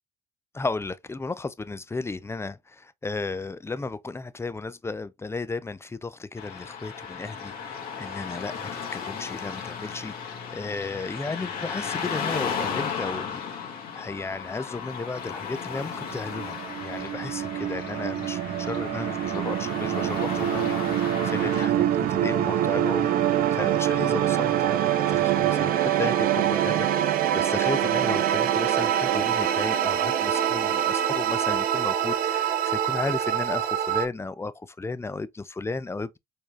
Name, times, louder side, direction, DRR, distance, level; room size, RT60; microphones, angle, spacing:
voice 1, 0.5-13.4 13.9-36.2, left 3 dB, 15° left, 0.5 m, -34 dB
Car passing by / Traffic noise roadway noise, 6.4-21.7, left 6 dB, 60° left, 1.4 m, -35 dB
sound 1, 15.7-34.1, right 11 dB, 55° right, 0.6 m, -25 dB
4.3 x 3.4 x 2.5 m
hypercardioid pair, 60°, 17 cm